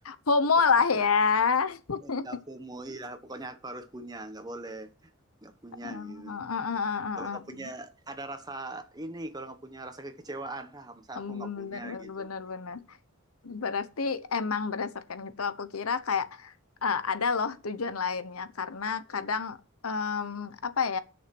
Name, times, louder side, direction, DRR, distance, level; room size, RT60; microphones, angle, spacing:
voice 1, 0.0-2.3 5.8-7.7 11.2-12.8 13.4-16.5 16.8-19.6 19.8-21.0, left 5 dB, 90° left, 0.9 m, -29 dB
voice 2, 2.0-4.9 5.4-6.4 7.2-12.3, right 2 dB, 20° right, 1.2 m, -41 dB
11.0 x 6.5 x 6.1 m
head